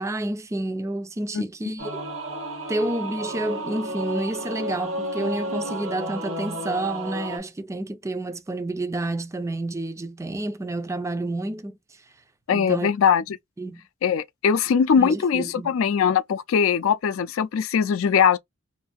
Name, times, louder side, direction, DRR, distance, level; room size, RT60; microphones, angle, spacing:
voice 1, 0.0-2.0 2.7-11.8 12.5-12.9 13.6-13.8 15.0-15.7, right 2 dB, 15° right, 0.3 m, -29 dB
Singing / Musical instrument, 1.8-7.4, right 1 dB, 75° right, 0.9 m, -32 dB
voice 2, 12.5-13.2 14.0-18.4, left 7 dB, 80° left, 0.4 m, -21 dB
2.7 x 2.5 x 2.2 m
head